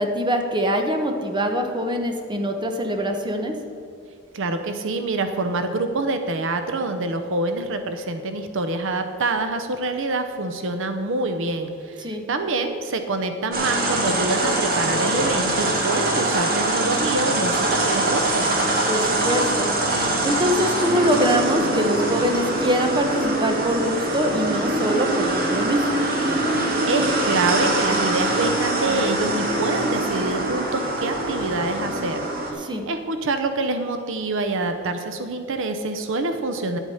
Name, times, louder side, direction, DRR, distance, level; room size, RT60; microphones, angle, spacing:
voice 1, 0.0-3.5 12.0-12.2 18.9-19.7 20.2-25.9 32.6-32.8, equal, 20° right, 5 dB, 1.0 m, -23 dB
voice 2, 4.3-18.4 26.9-32.2 32.5-36.8, right 2 dB, 65° right, 7 dB, 0.7 m, -26 dB
sound 1, 13.5-32.5, right 2 dB, 45° right, 1.8 m, -23 dB
10.5 x 8.2 x 5.5 m, 2.5 s
head